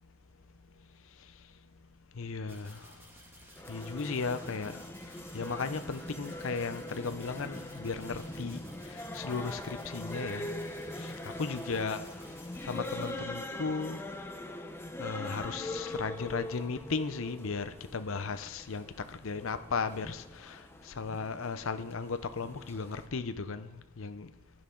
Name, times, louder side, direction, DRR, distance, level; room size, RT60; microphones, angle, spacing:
voice 1, 2.2-2.8 3.7-4.8 5.3-8.6 9.1-10.5 11.0-11.1 11.4-12.0 12.6-14.0 15.0-23.7 24.0-24.3, left 4 dB, 60° left, 10 dB, 0.7 m, -36 dB
sound 1, 2.5-13.1, equal, 10° right, 2.1 m, -55 dB
sound 2, 3.6-23.1, left 1 dB, 10° left, 0.7 m, -42 dB
15.5 x 10.5 x 3.8 m, 1.1 s
head